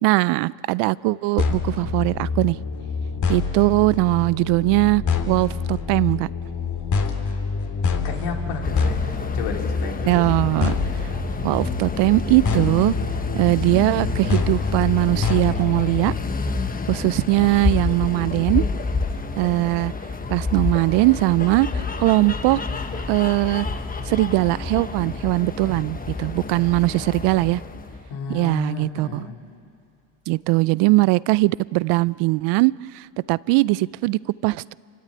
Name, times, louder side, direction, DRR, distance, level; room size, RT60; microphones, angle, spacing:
voice 1, 0.0-2.6 3.3-6.3 10.0-10.8 11.4-12.9 13.3-16.1 16.9-18.6 19.4-19.9 20.3-22.6 23.1-23.7 24.1-27.6 28.3-29.2 30.3-34.7, right 21 dB, 70° right, 21 dB, 0.5 m, -20 dB
sound 1, 1.4-16.1, left 5 dB, 40° left, 2.7 m, -26 dB
voice 2, 8.0-9.0 9.3-10.3 26.9-27.0 28.1-29.4, left 4 dB, 75° left, 2 dB, 3.3 m, -32 dB
sound 2, 8.6-28.1, left 4 dB, 20° left, 1.3 m, -29 dB
27.0 x 16.0 x 9.4 m, 2.4 s
supercardioid pair, 95°, 44 cm